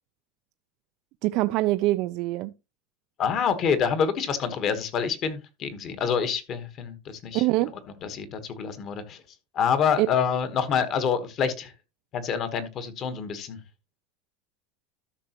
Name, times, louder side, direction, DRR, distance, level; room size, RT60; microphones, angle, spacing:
voice 1, 1.2-2.5 7.3-7.7 10.0-10.1, right 18 dB, 45° right, 0.4 m, -24 dB
voice 2, 3.2-7.4 8.0-9.2 9.5-11.7 12.1-13.6, left 7 dB, 35° left, 1.2 m, -27 dB
13.0 x 6.0 x 2.9 m
supercardioid pair, 165°, 0 cm